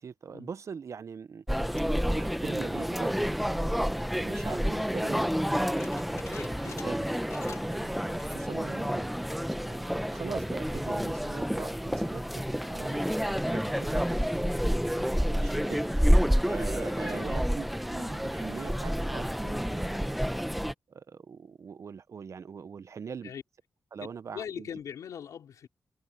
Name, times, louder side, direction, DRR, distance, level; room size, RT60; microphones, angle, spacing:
voice 1, 0.0-1.4 1.8-3.2 3.5-7.1 7.7-9.1 9.6-13.0 13.4-14.2 14.9-15.9 16.4-20.2 20.9-23.3 23.9-24.7, right 6 dB, 65° right, 0.9 m, -42 dB
sound 1, 1.5-20.7, equal, ahead, 1.0 m, -29 dB
sound 2, 5.8-7.8 8.1-8.5 8.9-9.0 9.7-10.1, left 6 dB, 70° left, 3.4 m, -48 dB
voice 2, 16.9-17.4 23.2-23.4 24.0-24.1 24.3-25.7, left 8 dB, 85° left, 3.5 m, -40 dB
cardioid pair, 60°, 6 cm